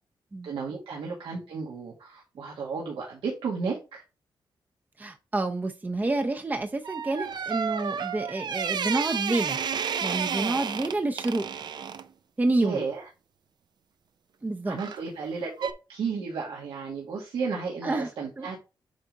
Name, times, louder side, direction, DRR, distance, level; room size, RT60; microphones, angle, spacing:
voice 1, 0.4-4.0 12.6-13.1 14.7-18.6, right 5 dB, 85° right, 1.9 m, -33 dB
voice 2, 5.0-9.6 10.0-11.4 12.4-12.8 14.4-14.8 17.8-18.1 18.4-18.5, right 2 dB, 20° right, 0.7 m, -28 dB
sound 1, 6.8-12.1 14.8-15.1 15.6-15.7, right 7 dB, 55° right, 0.6 m, -31 dB
8.5 x 3.5 x 3.9 m
cardioid pair, 105°, 9 cm